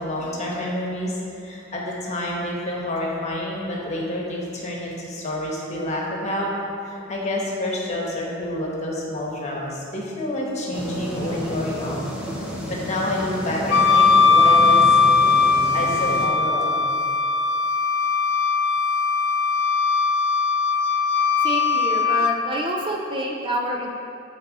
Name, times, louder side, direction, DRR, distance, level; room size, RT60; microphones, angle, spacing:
voice 1, 0.0-6.5 6.8-12.1 12.7-15.0 15.7-16.8, left 1 dB, 35° left, -3 dB, 1.2 m, -28 dB
sound 1, 10.7-16.3, equal, 5° right, 0.8 m, -31 dB
Wind instrument woodwind instrument, 13.7-22.4, left 4 dB, 65° left, 0.3 m, -19 dB
voice 2, 21.4-23.9, right 1 dB, 25° right, 0 dB, 0.4 m, -27 dB
8.7 x 4.1 x 4.0 m, 2.7 s
head